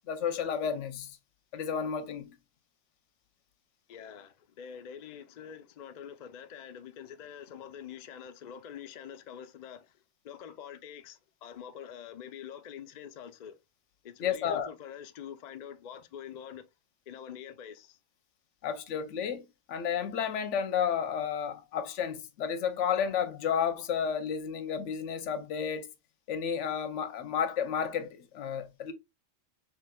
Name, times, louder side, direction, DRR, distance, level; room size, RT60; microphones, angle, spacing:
voice 1, 0.1-1.2 1.5-2.3 14.2-14.7 18.6-25.9 26.3-28.9, left 7 dB, 80° left, 1.0 m, -32 dB
voice 2, 3.9-10.0 10.2-13.6 14.0-16.6 17.1-18.0, left 8 dB, 55° left, 0.5 m, -45 dB
5.8 x 3.1 x 2.2 m
omnidirectional pair, 1.2 m